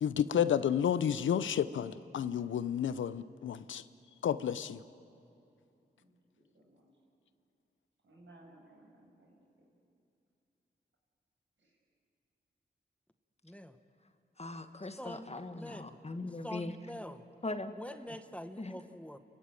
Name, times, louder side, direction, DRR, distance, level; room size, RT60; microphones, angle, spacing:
voice 1, 0.0-3.8 4.2-4.8, left 9 dB, 85° left, 14 dB, 0.7 m, -31 dB
voice 2, 6.0-6.9 8.0-9.4 11.6-11.7, right 1 dB, 80° right, -2 dB, 6.8 m, -60 dB
voice 3, 13.4-13.8 15.0-15.9 16.4-17.2 17.7-19.2, equal, 5° left, 9 dB, 1.3 m, -45 dB
voice 4, 14.4-16.8 17.4-17.7 18.6-18.8, left 2 dB, 35° left, 9 dB, 1.6 m, -40 dB
30.0 x 15.0 x 9.1 m, 2.6 s
cardioid pair, 40°, 19 cm